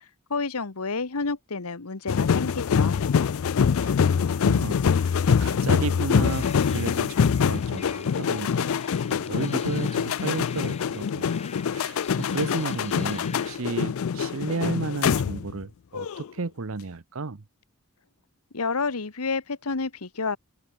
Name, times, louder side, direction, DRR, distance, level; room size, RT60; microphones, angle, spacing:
voice 1, 0.3-3.0 18.5-20.4, left 4 dB, 80° left, 1.2 m, -29 dB
sound 1, 2.1-15.6 15.9-16.3, left 6 dB, 65° left, 0.4 m, -24 dB
voice 2, 3.8-8.7 9.1-11.3 11.7-17.4, right 3 dB, 65° right, 0.8 m, -33 dB
sound 2, 6.2-13.6, left 6 dB, 30° left, 3.5 m, -45 dB
head